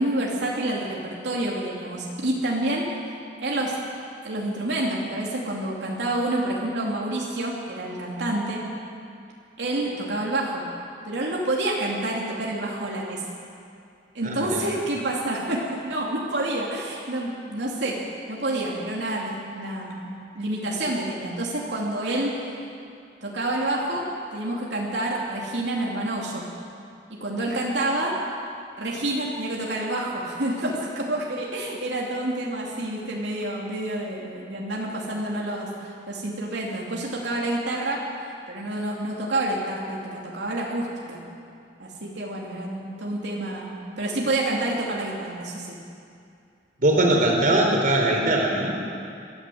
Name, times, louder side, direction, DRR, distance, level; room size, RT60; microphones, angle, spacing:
voice 1, 0.0-2.9 3.4-3.8 4.2-8.6 9.6-10.6 11.0-13.3 14.1-18.0 18.3-20.1 20.3-22.6 23.2-26.5 27.2-28.2 28.8-38.0 38.5-41.2 41.8-45.8, right 1 dB, 80° right, -3 dB, 2.8 m, -28 dB
voice 2, 14.2-14.6 46.8-49.0, right 1 dB, 50° right, 0 dB, 3.8 m, -21 dB
23.0 x 15.0 x 7.8 m, 2.5 s
head